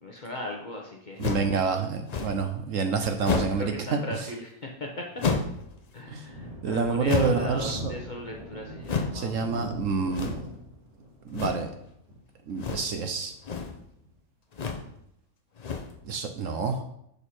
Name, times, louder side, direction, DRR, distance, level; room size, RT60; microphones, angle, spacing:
voice 1, 0.0-1.7 3.3-5.1 5.9-9.4 16.4-16.5, left 1 dB, 40° left, 0 dB, 0.8 m, -38 dB
sound 1, 1.2-1.6 2.1-2.5 3.2-3.7 5.2-5.6 7.1-7.5 8.8-9.2 10.1-10.5 11.3-11.7 12.6-13.0 13.3-13.8 14.5-14.9 15.6-16.0, left 5 dB, 70° left, 0.4 m, -30 dB
voice 2, 1.2-4.2 6.1-6.3 6.6-7.9 9.1-10.4 11.2-11.7 12.5-13.3 16.0-16.8, right 5 dB, 65° right, 6 dB, 0.9 m, -28 dB
Thunder, 5.0-14.1, equal, 50° right, 2.1 m, -42 dB
6.3 x 5.4 x 4.2 m, 0.75 s
omnidirectional pair, 1.7 m